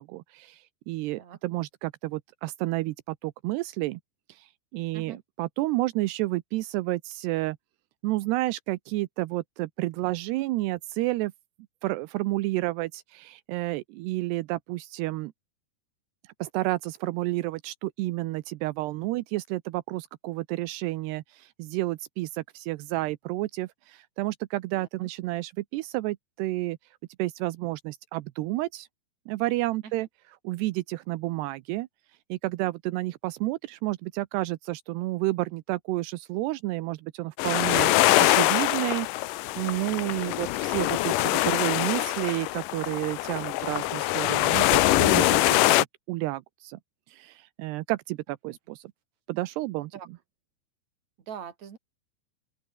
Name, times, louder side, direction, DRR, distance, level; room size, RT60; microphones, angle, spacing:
voice 1, 0.0-4.0 4.3-7.6 8.0-11.3 11.8-15.3 16.4-26.8 27.2-28.9 29.3-30.1 30.4-31.9 32.3-37.9 38.2-39.1 39.6-46.8 47.1-48.9 49.3-49.9, right 19 dB, 85° right, 2.9 m, -30 dB
voice 2, 24.8-25.1 29.8-29.9 49.9-50.1 51.3-51.8, right 8 dB, 45° right, 3.9 m, -42 dB
sound 1, 37.4-45.8, left 17 dB, 85° left, 1.9 m, -23 dB
open air
omnidirectional pair, 4.7 m